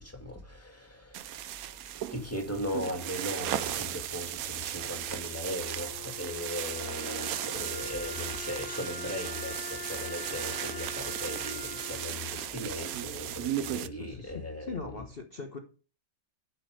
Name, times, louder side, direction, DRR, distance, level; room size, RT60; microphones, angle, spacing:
voice 1, 0.0-1.6 2.1-15.0, left 1 dB, 10° left, 1.9 m, -38 dB
sound 1, 1.1-13.9, right 12 dB, 70° right, 0.8 m, -36 dB
Wind instrument woodwind instrument, 4.7-13.8, left 6 dB, 60° left, 1.4 m, -44 dB
voice 2, 13.8-15.6, left 4 dB, 40° left, 1.0 m, -41 dB
11.5 x 5.6 x 4.9 m
omnidirectional pair, 2.0 m